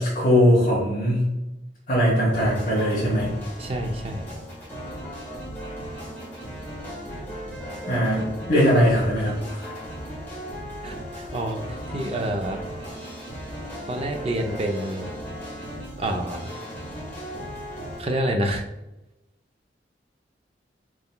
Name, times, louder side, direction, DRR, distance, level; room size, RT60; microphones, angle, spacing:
voice 1, 0.0-1.3 1.9-3.3 7.9-9.6, equal, 40° left, -7 dB, 1.1 m, -20 dB
sound 1, 2.3-18.0, equal, 10° left, 1.3 m, -37 dB
voice 2, 3.6-4.4 10.8-11.6 11.9-12.6 13.9-15.0 16.0-16.4 18.0-18.6, right 1 dB, 30° right, 3 dB, 0.5 m, -28 dB
4.4 x 3.8 x 2.2 m, 0.97 s
head